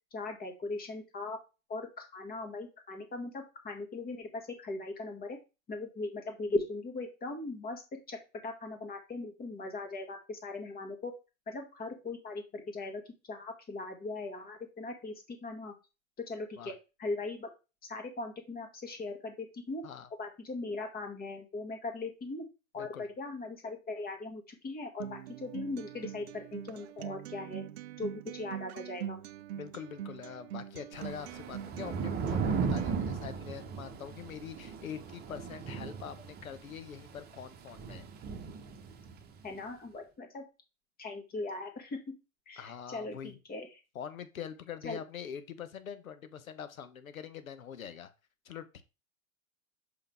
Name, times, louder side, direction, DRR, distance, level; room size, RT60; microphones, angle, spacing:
voice 1, 0.1-1.4 1.7-5.4 5.7-8.2 8.4-11.1 11.5-13.0 13.3-15.7 16.2-16.7 17.0-17.5 17.8-19.8 20.2-22.5 22.7-27.6 28.0-29.2 39.4-40.4 41.0-42.0 42.5-43.7 44.8-45.0, left 2 dB, 20° left, 4 dB, 2.0 m, -39 dB
voice 2, 22.8-23.1 29.5-38.1 42.6-43.4 43.9-48.1 48.4-48.8, left 8 dB, 75° left, 11 dB, 1.3 m, -44 dB
Acoustic guitar, 25.0-33.0, right 11 dB, 50° right, 0.5 m, -43 dB
Thunder / Rain, 30.9-39.3, right 5 dB, 25° right, 1.2 m, -37 dB
6.4 x 5.5 x 3.5 m, 0.29 s
figure-of-eight pair, 105°, 42 cm